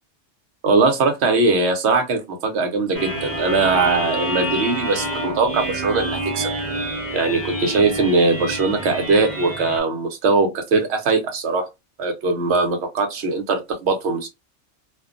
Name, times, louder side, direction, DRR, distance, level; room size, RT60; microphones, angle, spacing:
voice 1, 0.6-6.5 7.1-11.7 12.0-14.3, right 3 dB, 65° right, 1.0 m, -20 dB
sound 1, 2.9-9.8, right 1 dB, 10° left, 1.0 m, -28 dB
2.4 x 2.2 x 2.5 m
omnidirectional pair, 1.2 m